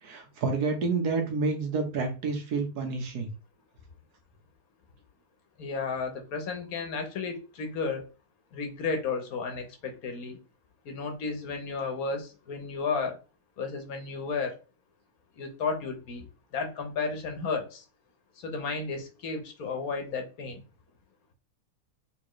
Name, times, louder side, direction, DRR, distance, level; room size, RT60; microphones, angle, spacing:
voice 1, 0.0-3.3, right 4 dB, 80° right, 5 dB, 1.6 m, -29 dB
voice 2, 5.6-8.0 8.5-10.4 10.8-13.2 13.6-14.6 15.4-16.3 16.5-17.8 18.4-20.6, left 4 dB, 70° left, 5 dB, 1.4 m, -33 dB
4.3 x 3.7 x 3.1 m, 0.32 s
omnidirectional pair, 1.6 m